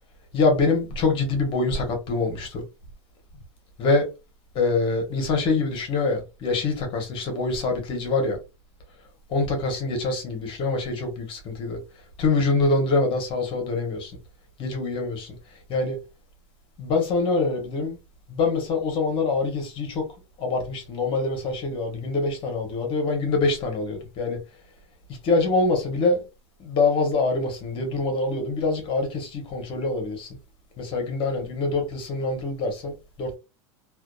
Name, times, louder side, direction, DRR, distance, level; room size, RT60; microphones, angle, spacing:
voice 1, 0.3-2.6 3.8-4.1 4.5-8.4 9.3-11.8 12.2-14.1 14.6-15.4 15.7-16.0 16.8-18.0 18.3-20.0 20.4-24.4 25.2-26.2 26.6-30.3 30.8-33.4, left 3 dB, 35° left, 0.9 m, -25 dB
2.6 x 2.3 x 2.2 m
supercardioid pair, 140°, 16 cm